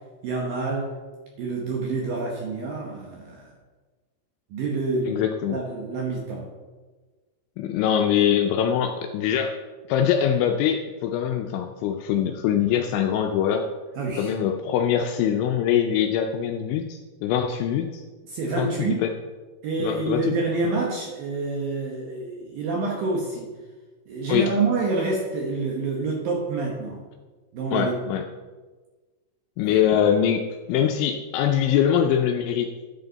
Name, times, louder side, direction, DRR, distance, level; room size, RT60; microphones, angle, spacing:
voice 1, 0.2-0.9 1.4-3.5 4.5-5.2 5.5-6.5 14.0-14.3 18.3-19.0 19.6-23.5 24.1-27.0 27.5-28.0 29.6-29.8, right 3 dB, 70° right, -1 dB, 2.2 m, -27 dB
voice 2, 5.1-5.6 7.6-9.6 9.9-13.7 14.2-18.0 18.6-19.1 19.8-20.3 24.3-24.5 27.7-28.2 29.6-30.4 30.7-32.7, left 9 dB, 80° left, 4 dB, 2.9 m, -23 dB
10.5 x 9.1 x 4.0 m, 1.3 s
omnidirectional pair, 5.6 m